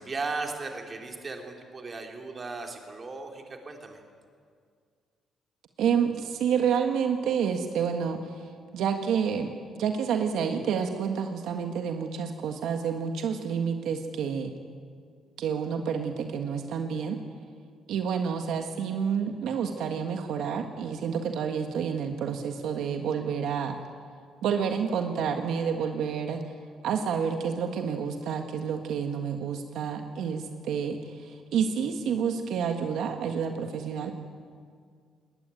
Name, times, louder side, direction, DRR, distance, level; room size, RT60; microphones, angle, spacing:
voice 1, 0.0-4.0, right 3 dB, 25° right, 2 dB, 3.0 m, -36 dB
voice 2, 5.8-9.5 9.8-14.5 15.4-17.2 17.9-23.8 24.4-26.4 26.8-34.1, right 7 dB, 75° right, 5 dB, 1.6 m, -29 dB
21.0 x 19.5 x 9.1 m, 2.1 s
cardioid pair, 145°, 0 cm